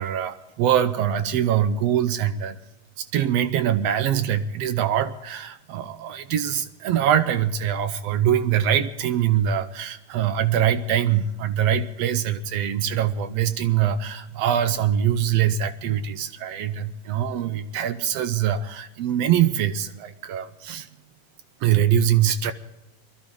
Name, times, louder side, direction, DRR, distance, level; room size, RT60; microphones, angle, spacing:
voice 1, 0.0-2.6 3.0-20.9 21.6-22.5, right 9 dB, 75° right, 11 dB, 1.6 m, -23 dB
21.5 x 13.5 x 3.7 m, 0.93 s
omnidirectional pair, 3.3 m